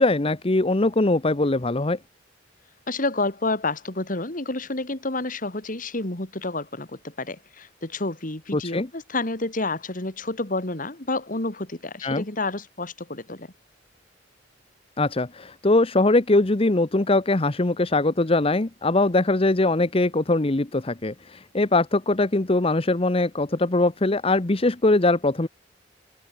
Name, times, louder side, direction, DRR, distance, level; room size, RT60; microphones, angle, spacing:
voice 1, 0.0-2.0 8.5-8.9 12.0-12.2 15.0-25.5, left 2 dB, 30° left, 0.9 m, -21 dB
voice 2, 2.9-13.5, left 2 dB, 45° left, 2.5 m, -29 dB
head